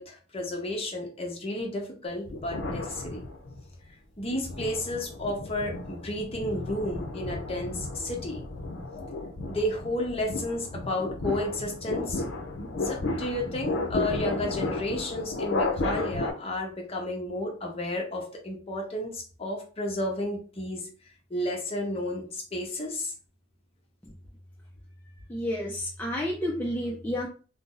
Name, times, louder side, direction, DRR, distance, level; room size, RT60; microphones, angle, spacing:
voice 1, 0.0-3.2 4.2-8.4 9.5-12.2 12.8-20.8 21.3-23.1, left 1 dB, 30° left, 1 dB, 0.8 m, -32 dB
sound 1, 2.3-3.7 4.2-16.3, left 2 dB, 70° left, 0.6 m, -33 dB
voice 2, 25.3-27.3, left 1 dB, 10° left, -2 dB, 0.4 m, -30 dB
2.6 x 2.0 x 3.7 m, 0.39 s
head